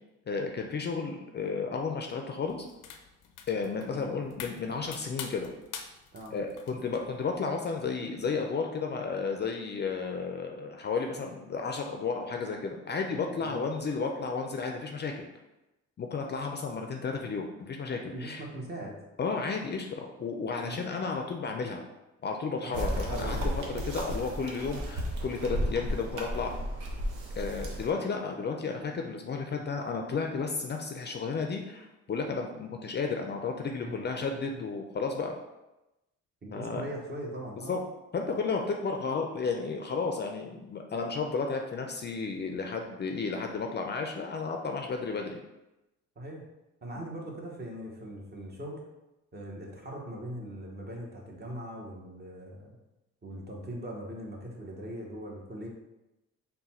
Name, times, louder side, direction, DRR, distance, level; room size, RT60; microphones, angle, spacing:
voice 1, 0.3-2.6 3.5-5.5 6.3-15.2 16.0-18.4 19.2-21.8 22.2-26.5 27.3-35.3 36.5-36.8 37.7-37.8 38.1-45.4 47.0-47.1, left 4 dB, 35° left, 3 dB, 0.4 m, -33 dB
sound 1, 2.5-7.4, left 7 dB, 90° left, 0.5 m, -46 dB
voice 2, 18.1-19.0 20.6-20.9 22.6-22.8 33.8-34.0 36.4-37.8 46.2-46.4 46.8-48.8 49.3-52.7 53.2-55.7, right 1 dB, 35° right, -1 dB, 1.0 m, -40 dB
sound 2, 22.7-27.9, equal, 80° right, 0.9 m, -33 dB
3.9 x 2.2 x 4.1 m, 0.97 s
cardioid pair, 90°, 30 cm